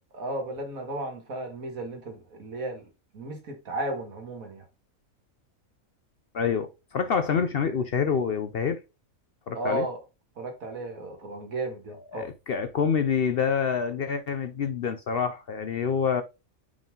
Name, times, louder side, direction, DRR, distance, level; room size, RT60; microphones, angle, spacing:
voice 1, 0.1-2.9 3.1-4.7 9.5-10.0 10.4-12.3, right 1 dB, 80° right, 2.2 m, -34 dB
voice 2, 6.3-8.8 9.5-9.9 12.1-16.2, left 6 dB, 60° left, 0.7 m, -27 dB
5.5 x 4.9 x 3.8 m
omnidirectional pair, 1.4 m